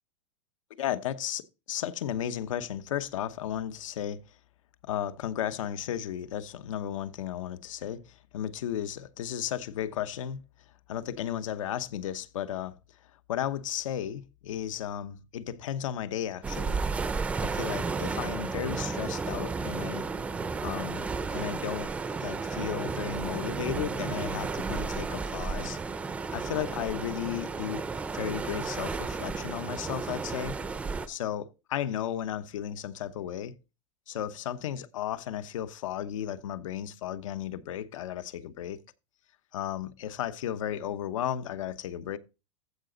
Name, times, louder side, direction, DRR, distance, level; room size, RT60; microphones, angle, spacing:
voice 1, 0.8-1.4 1.7-4.2 4.8-10.4 10.9-12.8 13.3-16.8 17.4-20.1 20.6-21.9 22.2-25.8 26.3-27.8 28.1-30.6 31.1-33.5 34.1-38.8 39.5-42.2, left 10 dB, 85° left, 1.0 m, -34 dB
sound 1, 16.4-31.1, right 4 dB, 10° right, 0.5 m, -33 dB
14.5 x 5.0 x 3.9 m
supercardioid pair, 165°, 16 cm